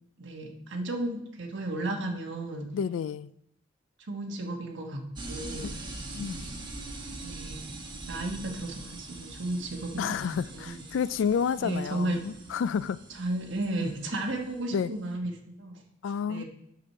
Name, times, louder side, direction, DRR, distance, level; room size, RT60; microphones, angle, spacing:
voice 1, 0.2-2.7 4.1-5.7 7.2-7.7 8.1-10.3 10.5-10.8 11.6-12.2 13.2-15.3 15.6-15.8 16.2-16.4, right 2 dB, 65° right, 1.3 m, -34 dB
voice 2, 2.7-3.3 5.6-5.7 6.1-6.5 10.0-13.0 14.7-14.9 16.0-16.4, left 7 dB, 65° left, 0.3 m, -30 dB
sound 1, 5.2-15.1, right 2 dB, 25° right, 1.1 m, -43 dB
6.2 x 6.1 x 5.4 m
head